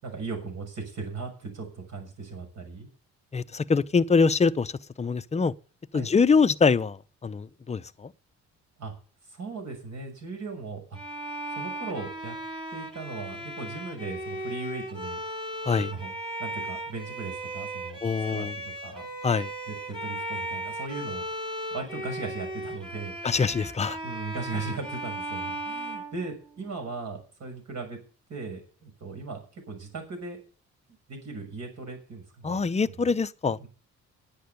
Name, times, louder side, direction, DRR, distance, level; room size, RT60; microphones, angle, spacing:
voice 1, 0.0-2.9 5.9-6.1 8.8-8.9 9.3-11.0 11.5-12.4 12.7-15.2 15.7-16.1 16.4-18.0 18.3-19.1 19.7-21.2 21.7-23.6 24.0-28.0 28.3-30.4 31.1-32.7 32.9-33.2 33.6-33.7, right 4 dB, 60° right, 6.5 m, -38 dB
voice 2, 3.3-4.7 5.0-5.5 5.9-8.1 15.7-15.9 18.0-18.6 19.2-19.5 23.2-24.0 32.4-33.6, left 5 dB, 20° left, 0.6 m, -24 dB
Bowed string instrument, 10.9-26.8, right 1 dB, 15° right, 3.4 m, -36 dB
10.5 x 8.5 x 9.5 m
cardioid pair, 90°, 30 cm